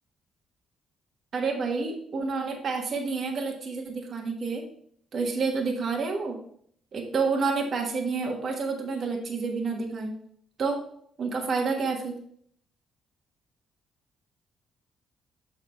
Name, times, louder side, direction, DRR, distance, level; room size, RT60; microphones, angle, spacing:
voice 1, 1.3-4.6 5.1-6.4 6.9-10.1 10.6-10.8 11.2-12.1, right 4 dB, 55° right, 1 dB, 1.4 m, -29 dB
6.8 x 4.7 x 4.4 m, 0.63 s
cardioid pair, 90°, 0 cm